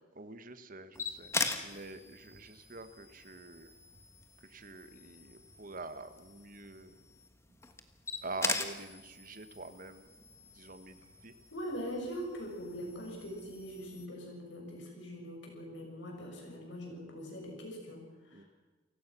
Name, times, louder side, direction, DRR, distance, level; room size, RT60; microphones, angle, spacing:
voice 1, 0.1-1.3 1.6-3.7 4.4-7.0 7.5-7.6 8.2-10.1 10.5-11.3 18.3-18.4, right 3 dB, 45° right, 10 dB, 1.5 m, -46 dB
sound 1, 0.9-14.1, left 3 dB, 15° left, 1.5 m, -42 dB
voice 2, 11.5-18.5, equal, 70° left, 1 dB, 7.0 m, -42 dB
29.0 x 17.0 x 6.2 m, 1.3 s
head